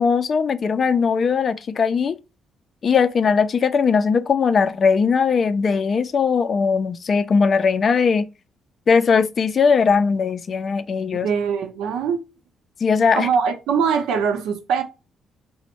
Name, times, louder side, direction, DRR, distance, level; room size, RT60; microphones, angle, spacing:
voice 1, 0.0-2.2 2.8-8.3 8.9-11.3 12.8-13.3, left 5 dB, 45° left, 0.4 m, -19 dB
voice 2, 11.1-12.2 13.1-14.8, right 6 dB, 85° right, 0.7 m, -22 dB
4.0 x 2.1 x 4.3 m
cardioid pair, 90°, 0 cm